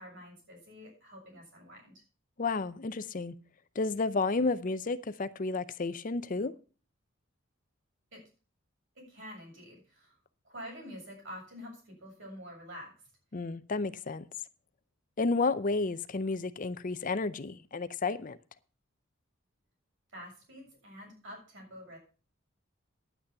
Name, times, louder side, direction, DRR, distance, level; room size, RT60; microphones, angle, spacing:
voice 1, 0.0-1.9 8.1-8.3 9.0-10.2 10.4-13.0 20.1-22.0, equal, 65° right, 7.1 m, -47 dB
voice 2, 2.4-3.3 3.8-6.5 13.3-14.2 15.2-18.4, left 3 dB, 40° left, 0.6 m, -31 dB
10.0 x 9.1 x 5.8 m
head